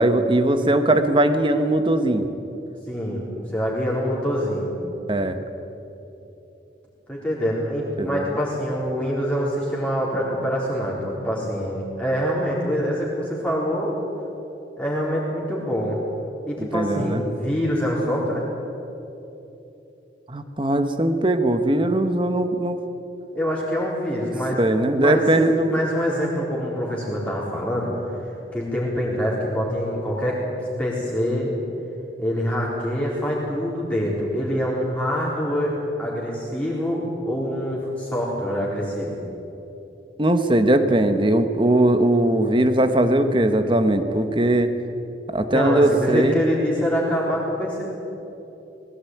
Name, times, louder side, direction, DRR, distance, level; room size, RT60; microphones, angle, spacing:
voice 1, 0.0-2.3 5.1-5.4 8.0-8.2 16.6-17.2 20.3-22.8 24.6-25.8 40.2-44.7 45.3-46.4, right 1 dB, 30° right, 9 dB, 1.2 m, -20 dB
voice 2, 2.9-3.3 3.5-4.7 7.1-13.9 14.8-16.0 16.4-18.4 23.3-24.6 25.0-27.9 28.5-30.4 30.8-31.5 32.2-39.2 45.5-47.8, equal, 5° left, -5 dB, 4.1 m, -25 dB
20.5 x 16.5 x 9.4 m, 3.0 s
head